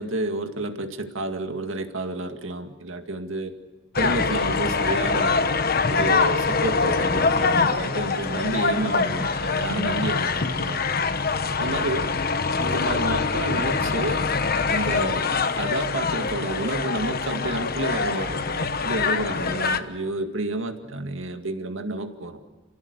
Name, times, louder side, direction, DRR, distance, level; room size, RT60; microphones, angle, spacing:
voice 1, 0.0-3.5 4.0-5.5 5.9-10.8 11.6-12.1 12.6-14.2 14.7-15.3 15.5-22.4, right 2 dB, 75° right, 6 dB, 2.1 m, -30 dB
sound 1, 4.0-19.8, left 4 dB, 50° left, 1.2 m, -24 dB
29.0 x 16.5 x 8.2 m, 1.2 s
head